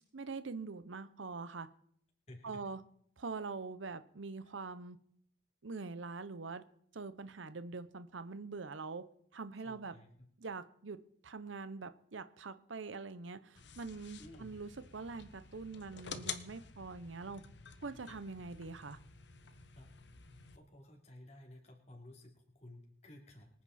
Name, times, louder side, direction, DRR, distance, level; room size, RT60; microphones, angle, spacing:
voice 1, 0.1-1.7 2.4-2.8 3.2-5.0 5.6-6.6 6.9-9.0 9.3-9.9 10.4-11.0 11.2-17.4 17.8-19.0, right 4 dB, 90° right, 12 dB, 0.8 m, -44 dB
voice 2, 2.3-2.6 9.6-10.1 14.2-14.5 19.7-19.9 20.5-23.5, left 1 dB, 35° left, 0 dB, 3.1 m, -54 dB
sound 1, 13.6-20.6, left 7 dB, 70° left, 1.3 m, -50 dB
25.0 x 9.6 x 4.2 m, 0.66 s
head